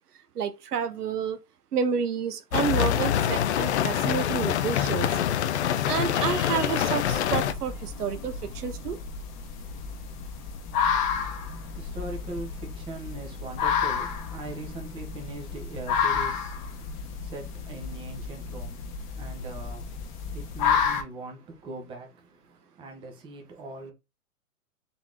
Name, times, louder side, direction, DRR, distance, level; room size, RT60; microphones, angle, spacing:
voice 1, 0.3-1.4 1.7-5.2 5.9-9.0, right 7 dB, 80° right, 0.9 m, -30 dB
sound 1, 2.5-7.5, left 10 dB, 50° left, 0.5 m, -25 dB
sound 2, 7.1-21.0, left 6 dB, 30° left, 1.0 m, -31 dB
voice 2, 11.1-23.9, right 2 dB, 10° right, 0.7 m, -41 dB
4.0 x 2.9 x 3.6 m
hypercardioid pair, 135°, 46 cm